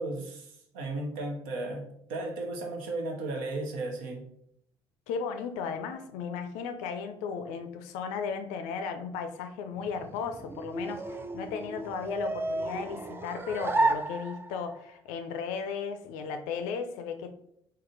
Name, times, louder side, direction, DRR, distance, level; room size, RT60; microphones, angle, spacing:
voice 1, 0.0-1.8 2.1-4.2, right 2 dB, 70° right, 3 dB, 0.7 m, -35 dB
voice 2, 5.1-17.3, left 6 dB, 65° left, 7 dB, 0.4 m, -35 dB
sound 1, 9.8-14.8, right 2 dB, 15° right, 0.4 m, -32 dB
3.7 x 2.1 x 3.7 m, 0.71 s
figure-of-eight pair, 50°, 13 cm